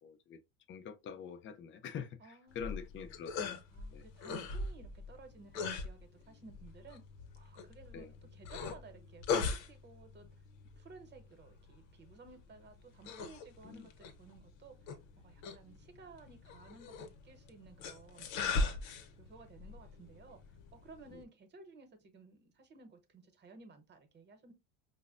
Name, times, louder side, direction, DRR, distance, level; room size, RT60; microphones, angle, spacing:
voice 1, 0.0-0.4 0.7-3.6 3.9-4.0 7.9-8.1 13.6-13.9 21.1-21.2, left 7 dB, 30° left, 0.5 m, -45 dB
voice 2, 2.2-2.9 3.7-7.1 7.4-10.3 10.8-14.7 15.2-20.4 20.7-24.5, right 3 dB, 25° right, 0.9 m, -56 dB
sound 1, 2.5-21.2, left 4 dB, 70° left, 0.8 m, -41 dB
5.0 x 2.2 x 2.4 m
supercardioid pair, 110°, 38 cm